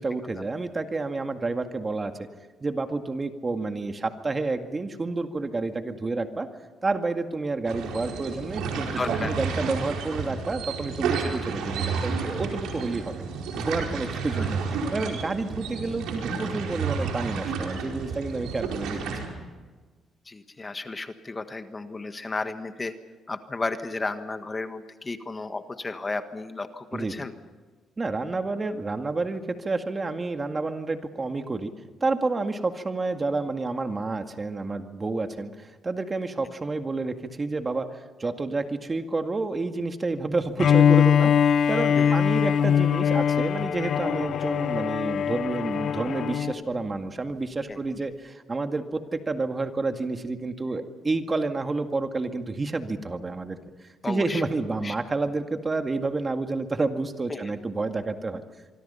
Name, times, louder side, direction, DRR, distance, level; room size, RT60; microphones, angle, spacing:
voice 1, 0.0-2.1 2.6-6.5 6.8-13.1 13.6-19.0 26.9-27.2 28.0-31.7 32.0-53.6 54.1-58.4, right 3 dB, 30° right, 6 dB, 2.0 m, -29 dB
sound 1, 7.6-19.3, right 5 dB, 90° right, 4.7 m, -31 dB
voice 2, 9.0-9.5 14.3-14.5 20.2-22.9 23.3-27.3 41.9-42.2 47.7-48.0 54.0-54.4 54.8-55.0 57.3-57.5, left 3 dB, 25° left, 9 dB, 1.5 m, -33 dB
Bowed string instrument, 40.6-46.6, left 8 dB, 65° left, 0.6 m, -22 dB
25.5 x 24.0 x 5.7 m, 1.4 s
cardioid pair, 90°, 0 cm